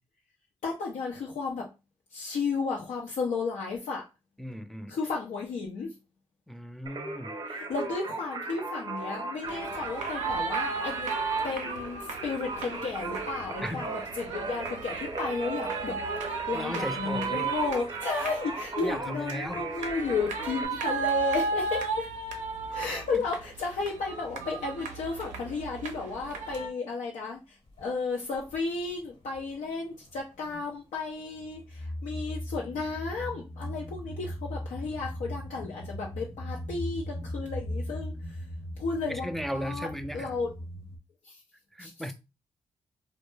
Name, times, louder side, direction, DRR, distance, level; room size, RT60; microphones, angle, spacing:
voice 1, 0.6-1.7 2.1-4.0 4.9-5.9 7.5-11.1 11.4-22.1 22.7-27.4 27.8-38.4 38.8-39.9 40.1-40.5 41.3-41.4 41.8-41.9, left 4 dB, 75° left, 0.5 m, -33 dB
voice 2, 4.4-4.9 6.5-7.4 13.6-13.9 16.5-17.5 18.8-19.6 23.1-23.2 39.1-40.3 41.7-42.1, equal, ahead, 0.3 m, -36 dB
Singing, 6.9-20.7, right 3 dB, 40° right, 0.7 m, -37 dB
sound 1, 9.4-26.7, right 4 dB, 85° right, 0.5 m, -35 dB
sound 2, 27.7-27.9 28.3-29.5 29.8-30.8 31.3-41.0, equal, 45° left, 0.8 m, -39 dB
2.1 x 2.0 x 3.1 m
cardioid pair, 60°, 12 cm